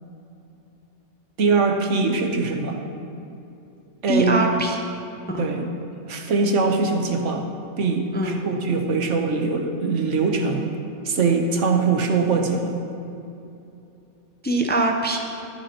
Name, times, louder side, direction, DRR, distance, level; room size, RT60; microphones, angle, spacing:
voice 1, 1.4-2.8 4.0-4.4 5.4-5.7 6.1-7.5 7.8-10.7 11.0-12.8, right 4 dB, 85° right, 3 dB, 1.3 m, -22 dB
voice 2, 4.1-4.8 5.3-5.5 8.1-8.4 14.4-15.2, right 1 dB, 15° left, 2 dB, 0.4 m, -22 dB
13.5 x 9.6 x 2.9 m, 2.8 s
omnidirectional pair, 1.2 m